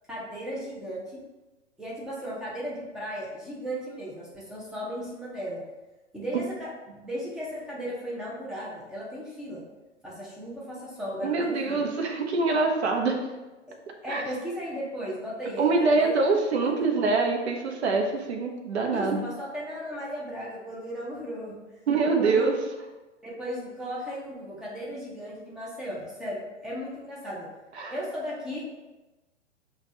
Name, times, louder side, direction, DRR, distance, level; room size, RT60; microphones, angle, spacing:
voice 1, 0.1-1.2 1.8-5.6 6.1-9.6 10.0-11.8 14.0-16.1 16.6-16.7 18.9-21.5 22.2-22.5 23.2-27.5 27.9-28.6, equal, ahead, -6 dB, 0.6 m, -36 dB
voice 2, 11.2-13.2 14.1-14.2 15.6-19.2 21.9-22.6 27.7-28.0, right 3 dB, 60° right, 2 dB, 0.7 m, -24 dB
5.8 x 2.4 x 2.8 m, 1.1 s
figure-of-eight pair, 110°, 37 cm